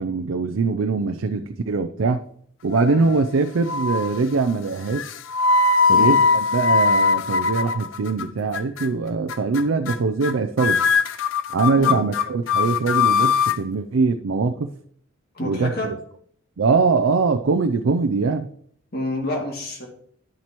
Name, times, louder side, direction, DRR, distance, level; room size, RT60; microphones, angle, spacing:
voice 1, 0.0-2.2 2.6-5.1 5.9-10.8 11.5-14.7 15.4-15.9 16.6-18.5, right 4 dB, 80° right, 8 dB, 0.5 m, -22 dB
sound 1, 2.7-3.3 3.7-4.2 4.9-8.2 8.5-8.9 9.3-9.6 9.9-10.0 10.2-10.3 10.6-13.6, left 4 dB, 70° left, 0.5 m, -20 dB
voice 2, 5.9-6.2 11.8-12.1 15.3-15.9 18.9-19.9, left 1 dB, 50° left, 0 dB, 2.3 m, -29 dB
11.0 x 7.3 x 3.0 m, 0.64 s
head